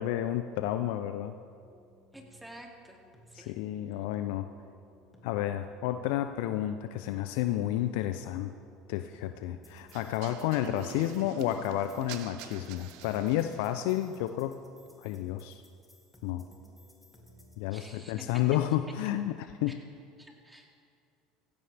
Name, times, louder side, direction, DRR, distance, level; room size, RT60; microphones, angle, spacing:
voice 1, 0.0-1.3 3.3-4.5 5.2-8.5 8.9-14.6 15.0-15.6 16.2-16.4 17.6-19.7, left 12 dB, 70° left, 9 dB, 0.5 m, -31 dB
sound 1, 1.6-17.6, equal, 10° left, 2.7 m, -58 dB
voice 2, 2.1-3.0 3.3-3.5 17.7-18.3 20.2-20.7, right 1 dB, 10° right, 0 dB, 2.7 m, -50 dB
sound 2, 9.9-13.9, right 11 dB, 70° right, 0.7 m, -46 dB
17.0 x 16.0 x 3.5 m, 2.3 s
hypercardioid pair, 80°, 0 cm